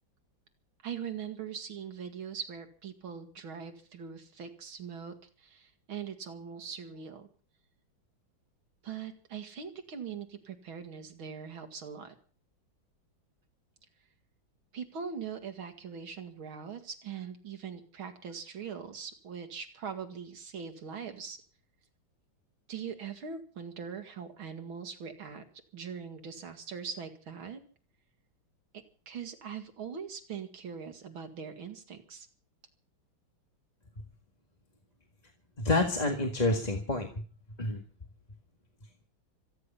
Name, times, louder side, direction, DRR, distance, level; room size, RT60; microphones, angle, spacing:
voice 1, 0.8-7.3 8.8-12.1 14.7-21.4 22.7-25.4 25.7-27.6 29.1-32.3, right 6 dB, 85° right, 6 dB, 2.8 m, -41 dB
voice 2, 35.6-37.1 37.6-37.8, left 2 dB, 20° left, 2 dB, 1.8 m, -28 dB
25.5 x 10.0 x 5.6 m, 0.42 s
omnidirectional pair, 2.2 m